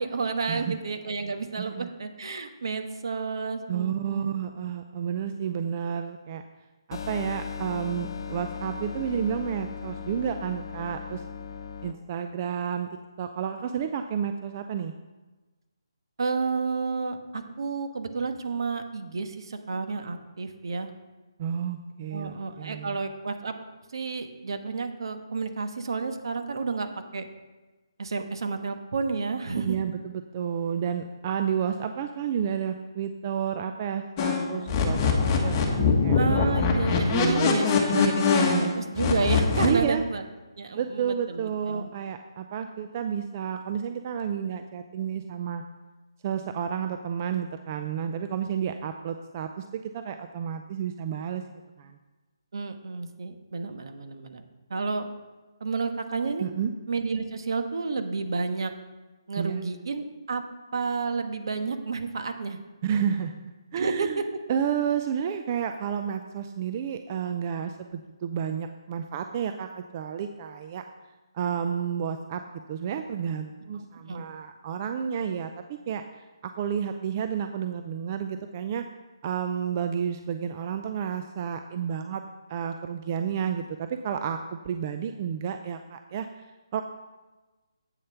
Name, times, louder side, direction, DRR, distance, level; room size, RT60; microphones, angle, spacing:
voice 1, 0.0-4.4 16.2-20.9 22.1-23.5 23.9-26.9 27.1-27.3 28.0-29.8 36.1-40.2 40.6-41.9 52.5-54.4 54.7-55.1 55.6-56.5 56.9-58.7 59.3-60.4 60.7-62.6 63.7-64.2 74.1-74.2, right 4 dB, 65° right, 7 dB, 1.3 m, -31 dB
voice 2, 1.6-1.9 3.7-6.4 6.9-11.2 11.8-12.9 13.2-14.9 21.4-23.0 29.6-36.2 37.2-37.6 37.9-38.1 39.6-40.0 40.7-45.6 46.2-51.4 51.8-52.0 56.4-56.7 59.4-59.6 62.8-64.2 64.5-70.8 71.3-72.4 72.7-76.0 76.4-78.8 79.2-82.2 82.5-86.8, right 8 dB, 35° right, 7 dB, 0.5 m, -31 dB
sound 1, 6.9-11.9, left 6 dB, 55° left, 0.9 m, -37 dB
sound 2, 34.2-39.7, left 4 dB, 25° left, 1.5 m, -23 dB
8.2 x 7.6 x 5.7 m, 1.2 s
hypercardioid pair, 155°, 3 cm